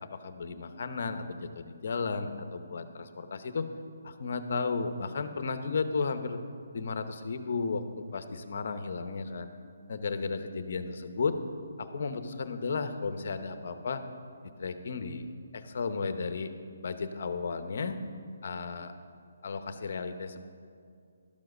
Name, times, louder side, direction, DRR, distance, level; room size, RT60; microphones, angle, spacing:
voice 1, 0.0-3.7 4.0-6.4 6.7-9.5 9.9-11.3 11.8-14.0 14.4-16.5 16.8-18.0 18.4-18.9 19.4-20.4, left 4 dB, 45° left, 9 dB, 0.8 m, -34 dB
12.0 x 7.4 x 6.5 m, 2.3 s
hypercardioid pair, 175°, 0 cm